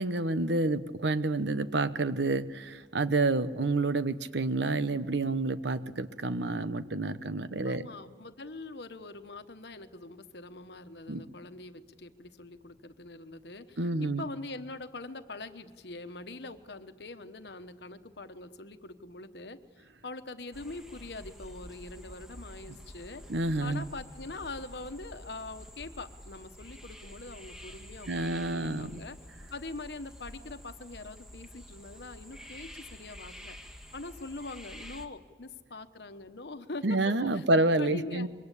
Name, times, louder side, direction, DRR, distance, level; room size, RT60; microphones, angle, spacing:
voice 1, 0.0-7.9 11.1-11.2 13.8-14.3 22.7-22.8 23.3-23.8 28.1-29.0 36.8-38.3, right 2 dB, 80° right, 12 dB, 1.1 m, -29 dB
voice 2, 7.6-19.6 20.0-23.2 23.6-29.2 29.5-37.4 37.8-38.3, left 3 dB, 65° left, 10 dB, 1.2 m, -43 dB
sound 1, 20.5-35.1, equal, 5° right, 1.7 m, -49 dB
25.0 x 23.0 x 8.4 m, 1.4 s
head